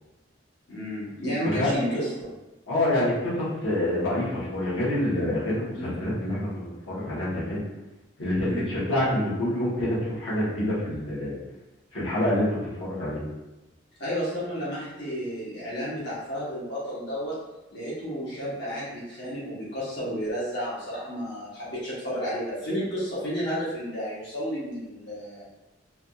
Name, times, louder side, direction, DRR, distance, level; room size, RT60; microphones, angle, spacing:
voice 1, 0.7-2.3 5.7-5.9 8.4-8.7 14.0-17.4 17.7-25.5, equal, 65° left, -10 dB, 1.1 m, -32 dB
voice 2, 2.7-7.6 8.2-11.4 11.9-13.2, left 1 dB, 85° left, -9 dB, 1.2 m, -27 dB
3.4 x 2.6 x 2.3 m, 1.0 s
head